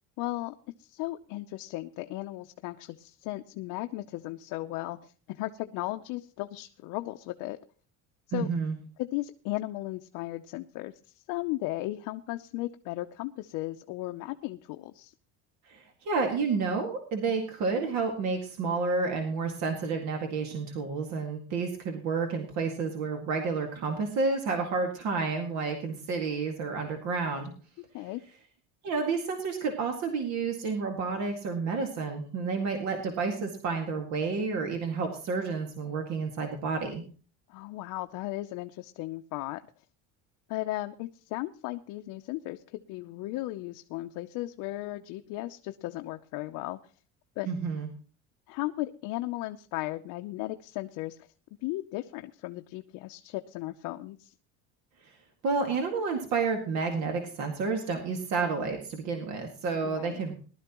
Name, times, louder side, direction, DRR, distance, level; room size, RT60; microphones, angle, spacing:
voice 1, 0.2-7.6 8.3-8.5 9.0-15.1 27.9-28.2 37.5-39.6 40.5-46.8 47.4-47.5 48.5-51.2 51.6-54.3 59.8-60.2, left 17 dB, 65° left, 6 dB, 0.7 m, -36 dB
voice 2, 8.3-8.8 15.7-27.5 28.8-37.0 47.5-47.9 55.0-55.2 55.4-60.3, right 4 dB, 55° right, 3 dB, 2.0 m, -30 dB
19.5 x 12.0 x 3.0 m, 0.38 s
cardioid pair, 180°, 33 cm